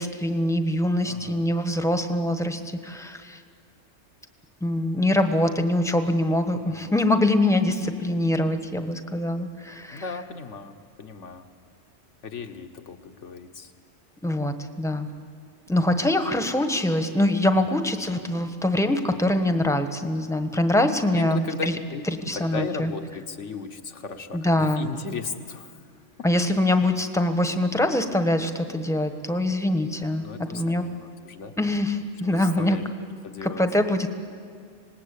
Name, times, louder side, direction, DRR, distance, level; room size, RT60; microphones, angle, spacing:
voice 1, 0.0-3.4 4.6-10.0 14.2-15.1 15.7-21.8 22.3-22.9 24.3-24.9 26.2-30.8 31.6-32.8 33.4-34.1, left 1 dB, 5° left, 7 dB, 1.1 m, -24 dB
voice 2, 1.0-1.4 6.6-6.9 9.9-11.5 12.2-13.7 17.5-17.8 21.1-25.8 30.2-31.5 32.2-32.8 33.2-33.6, left 4 dB, 70° left, 7 dB, 1.6 m, -36 dB
26.5 x 19.5 x 8.4 m, 2.2 s
omnidirectional pair, 1.3 m